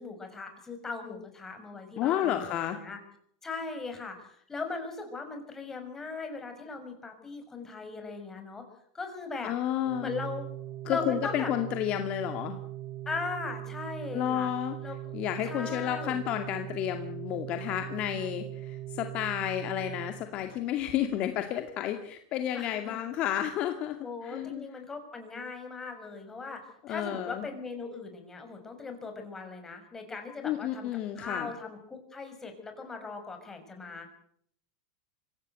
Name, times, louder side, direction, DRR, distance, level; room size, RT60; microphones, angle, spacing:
voice 1, 0.0-3.0 3.4-8.6 8.9-9.5 10.0-10.5 10.9-11.5 13.0-14.5 14.8-15.1 15.4-16.2 22.5-23.0 24.0-30.9 31.2-34.1, left 4 dB, 15° left, 5 dB, 6.5 m, -39 dB
voice 2, 2.0-2.8 9.4-10.1 10.9-12.6 14.1-14.8 15.1-24.0 24.2-24.7 26.8-27.5 30.4-31.5, left 11 dB, 45° left, 6 dB, 2.1 m, -31 dB
Organ, 9.8-20.7, right 13 dB, 50° right, 1.9 m, -40 dB
25.0 x 16.5 x 8.1 m, 0.67 s
supercardioid pair, 120°, 3 cm